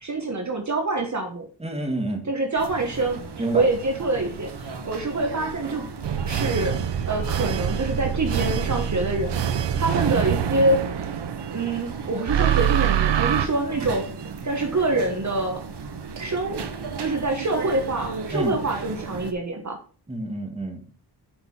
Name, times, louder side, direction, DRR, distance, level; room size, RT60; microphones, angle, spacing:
voice 1, 0.0-1.5 2.3-5.8 6.2-6.7 7.1-9.4 9.7-10.8 11.5-14.0 14.4-15.6 16.2-16.6 17.0-19.8, right 2 dB, 40° right, 3 dB, 1.4 m, -25 dB
voice 2, 1.6-2.3 3.4-3.6 18.3-18.6 20.1-20.9, right 1 dB, 15° right, 3 dB, 1.8 m, -28 dB
sound 1, 2.6-19.3, right 5 dB, 70° right, 1.2 m, -36 dB
sound 2, 6.0-11.8 12.3-13.5, right 9 dB, 85° right, 0.7 m, -25 dB
6.8 x 5.5 x 6.0 m, 0.41 s
wide cardioid pair, 125°, 42 cm